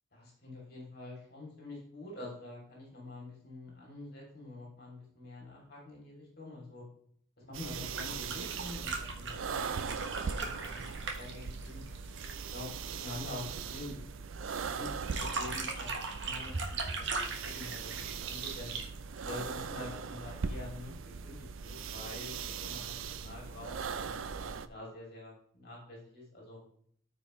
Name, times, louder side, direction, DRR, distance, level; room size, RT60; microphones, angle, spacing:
voice 1, 0.1-6.8 7.4-10.9 11.1-11.8 12.5-12.7 13.0-14.0 14.6-15.9 16.2-18.8 19.2-20.9 21.2-26.6, left 2 dB, 50° left, -3 dB, 2.9 m, -46 dB
sound 1, 7.5-24.7, right 5 dB, 75° right, 0.5 m, -40 dB
sound 2, 7.8-12.4 14.9-19.7 21.1-21.2, right 4 dB, 55° right, 1.3 m, -39 dB
13.5 x 5.0 x 3.2 m, 0.63 s
head